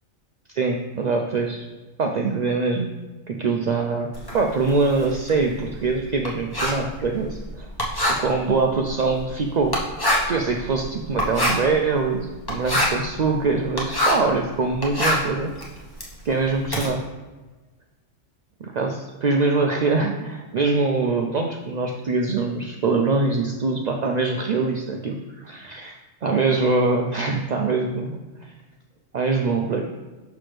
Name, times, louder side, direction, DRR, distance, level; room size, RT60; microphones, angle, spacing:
voice 1, 0.5-1.6 2.0-2.9 3.3-4.1 4.3-7.7 8.2-9.8 10.3-15.5 16.2-17.0 18.6-25.9 26.2-28.5 29.1-29.9, right 3 dB, 65° right, 2 dB, 0.4 m, -23 dB
Writing, 4.1-14.3 14.7-16.9, left 1 dB, 20° left, 1.0 m, -26 dB
6.0 x 5.9 x 3.2 m, 1.2 s
omnidirectional pair, 1.3 m